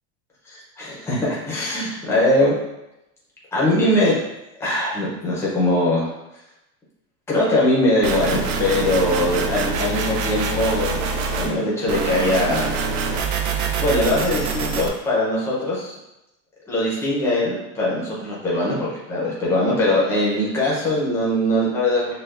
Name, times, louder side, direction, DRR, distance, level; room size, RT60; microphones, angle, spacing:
voice 1, 0.5-2.6 3.5-4.2 4.6-6.1 7.3-11.1 11.4-12.8 13.0-13.3 13.8-15.9 16.7-22.1, left 1 dB, 5° left, -6 dB, 0.6 m, -21 dB
sound 1, 8.0-11.5 11.9-14.9, right 4 dB, 60° right, 0.6 m, -25 dB
6.6 x 2.2 x 2.4 m, 0.92 s
supercardioid pair, 175°, 37 cm